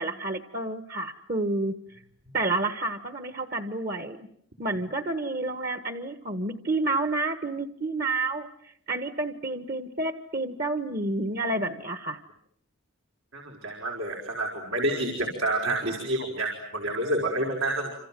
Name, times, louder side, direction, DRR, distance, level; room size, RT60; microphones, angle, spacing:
voice 1, 0.0-2.0 2.3-4.3 4.6-12.2, right 2 dB, 40° right, 9 dB, 1.4 m, -30 dB
voice 2, 13.3-17.9, right 1 dB, 85° right, 1 dB, 5.0 m, -28 dB
29.0 x 27.0 x 7.6 m, 0.71 s
head